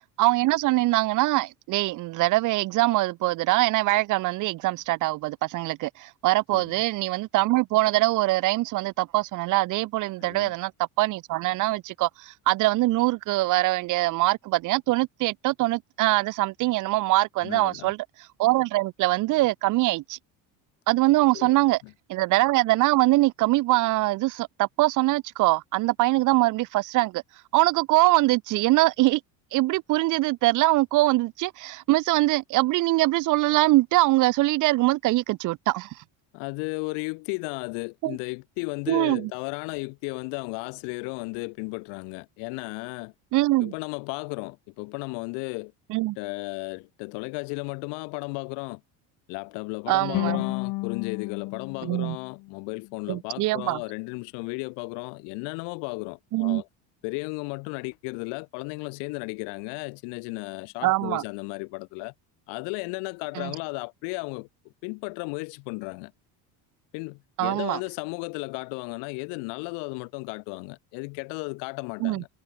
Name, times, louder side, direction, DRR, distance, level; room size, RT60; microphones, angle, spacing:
voice 1, 0.2-10.7 11.0-18.0 18.4-20.2 20.9-21.8 22.1-27.2 27.5-29.2 29.5-36.0 38.0-38.2 38.9-39.3 43.3-43.7 45.9-46.2 49.9-50.4 51.8-52.2 53.1-53.8 56.3-56.6 60.8-61.2 63.3-63.5 67.4-67.8 72.0-72.2, right 19 dB, 50° right, 0.9 m, -23 dB
voice 2, 10.2-10.5 17.4-17.9 21.3-21.6 21.8-21.9 36.3-43.1 43.6-45.7 46.2-48.8 49.3-56.7 57.0-62.1 62.5-64.5 64.8-66.1 66.9-72.3, left 34 dB, 90° left, 3.2 m, -34 dB
sound 1, 50.1-53.3, left 22 dB, 55° left, 0.8 m, -33 dB
cardioid pair, 170°, 40 cm